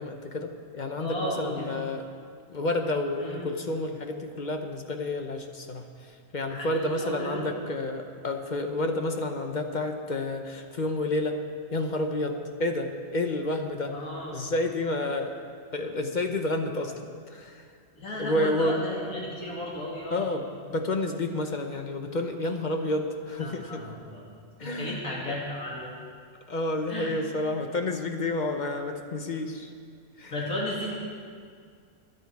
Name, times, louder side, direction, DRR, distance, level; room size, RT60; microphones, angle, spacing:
voice 1, 0.0-2.0 2.5-11.4 11.7-14.0 14.3-15.3 15.7-17.7 18.2-18.8 20.1-23.8 24.6-25.3 26.5-29.7 30.2-30.3, left 2 dB, 35° left, 4 dB, 0.9 m, -30 dB
voice 2, 1.0-1.7 3.1-3.5 6.5-7.4 13.9-14.4 18.0-20.3 23.4-24.2 24.6-25.9 26.9-27.1 30.3-30.9, left 1 dB, 75° left, -5 dB, 2.9 m, -34 dB
22.0 x 9.3 x 4.7 m, 2.1 s
omnidirectional pair, 1.5 m